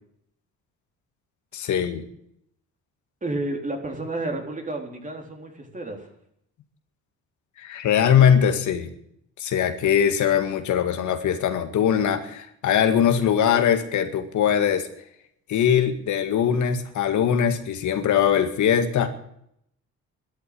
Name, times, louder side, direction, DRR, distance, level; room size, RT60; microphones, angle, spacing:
voice 1, 1.5-2.1 7.6-8.9 9.4-14.9 15.5-19.1, left 8 dB, 75° left, 7 dB, 2.0 m, -21 dB
voice 2, 3.2-6.1, right 2 dB, 25° right, 2 dB, 3.9 m, -31 dB
13.0 x 11.0 x 9.9 m, 0.71 s
cardioid pair, 90°, 30 cm